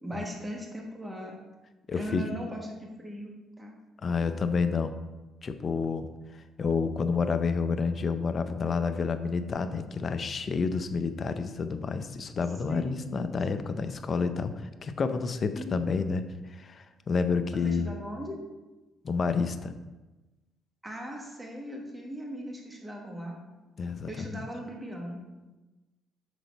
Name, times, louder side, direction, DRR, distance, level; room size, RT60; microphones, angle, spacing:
voice 1, 0.0-1.4 2.0-3.3 3.6-3.7 12.7-13.3 15.5-15.8 17.6-18.4 20.8-23.4 24.1-25.2, equal, 15° right, 0 dB, 1.4 m, -39 dB
voice 2, 1.9-2.3 4.0-4.9 5.4-18.0 19.0-19.7 23.8-24.5, left 5 dB, 40° left, 9 dB, 0.5 m, -29 dB
6.2 x 3.9 x 5.2 m, 1.1 s
cardioid pair, 95°, 0 cm